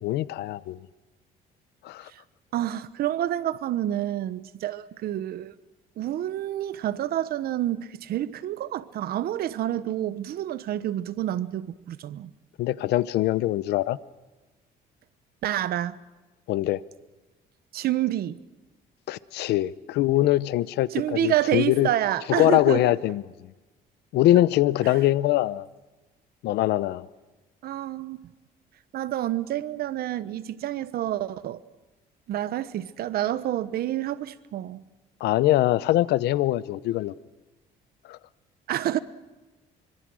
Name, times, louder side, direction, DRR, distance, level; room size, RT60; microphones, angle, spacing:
voice 1, 0.0-0.8 1.8-2.1 12.6-14.0 16.5-16.8 19.1-21.9 22.3-23.2 24.1-25.6 26.4-27.0 35.2-37.1 38.1-38.2, left 15 dB, 80° left, 0.8 m, -23 dB
voice 2, 2.5-5.5 6.0-12.3 15.4-16.0 17.7-18.4 20.9-22.8 24.8-25.0 27.6-28.2 28.9-31.6 32.3-34.8 38.7-39.0, right 12 dB, 65° right, 1.1 m, -28 dB
25.5 x 24.0 x 6.3 m
cardioid pair, 110°, 17 cm